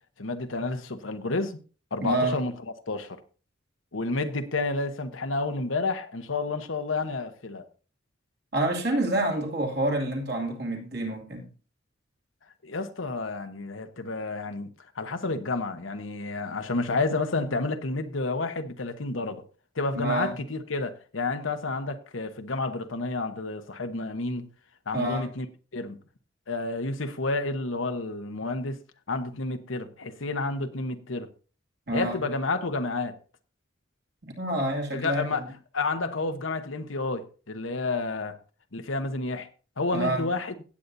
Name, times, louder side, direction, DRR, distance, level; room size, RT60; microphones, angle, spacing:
voice 1, 0.2-1.6 1.9-2.5 2.9-3.2 3.9-7.6 12.6-19.4 19.7-24.5 24.9-25.5 25.7-26.0 26.5-28.8 29.1-31.3 31.9-33.2 34.9-35.4 35.7-38.4 38.7-39.5 39.8-40.5, left 3 dB, 90° left, 1.1 m, -30 dB
voice 2, 2.0-2.4 8.5-11.5 19.9-20.3 24.9-25.3 31.9-32.2 34.2-35.5 39.9-40.3, right 2 dB, 60° right, 2.6 m, -28 dB
17.0 x 8.2 x 2.7 m
head